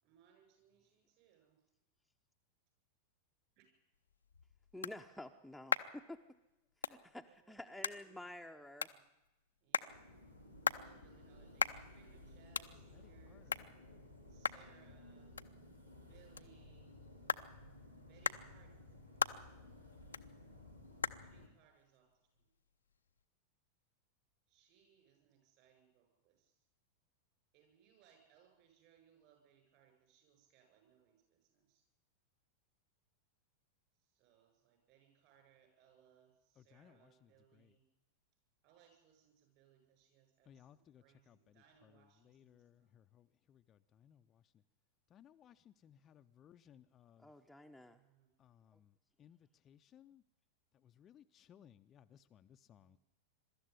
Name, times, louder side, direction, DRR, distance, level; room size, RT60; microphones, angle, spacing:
voice 1, 0.0-1.6 3.6-3.7 7.4-9.1 9.6-10.1 10.7-13.6 14.3-15.4 16.0-17.0 18.1-18.8 21.2-22.1 22.3-22.5 24.5-26.6 27.5-31.8 34.0-37.8 38.6-43.1 47.8-48.3 52.7-53.0, right 8 dB, 45° right, 7.8 m, -69 dB
sound 1, 3.9-23.2, left 6 dB, 75° left, 0.7 m, -43 dB
voice 2, 4.7-6.2 6.8-8.9 47.2-48.0, left 1 dB, ahead, 0.9 m, -50 dB
sound 2, 9.9-21.5, left 1 dB, 90° right, 2.9 m, -57 dB
voice 3, 12.7-13.7 36.6-37.7 40.4-44.6 45.1-47.3 48.4-50.2 50.7-53.0, left 9 dB, 30° left, 0.7 m, -64 dB
22.5 x 13.0 x 9.8 m
figure-of-eight pair, 90°, 0 cm